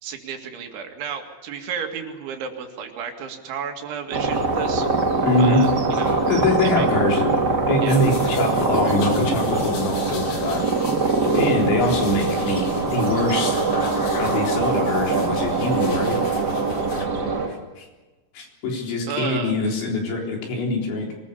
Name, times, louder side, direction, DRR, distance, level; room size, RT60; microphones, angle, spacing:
voice 1, 0.0-4.9 5.4-6.1 6.6-6.9 7.8-8.0 19.1-19.5, right 7 dB, 80° right, 3 dB, 4.6 m, -32 dB
sound 1, 4.1-17.5, right 3 dB, 40° right, 1.5 m, -23 dB
sound 2, 4.3-17.1, left 4 dB, 50° left, 3.4 m, -39 dB
voice 2, 5.2-5.7 6.3-10.6 11.3-13.6 14.2-16.2 17.2-17.9 18.3-21.2, left 2 dB, 75° left, 0 dB, 6.3 m, -23 dB
24.0 x 20.5 x 7.0 m, 1.2 s
omnidirectional pair, 5.3 m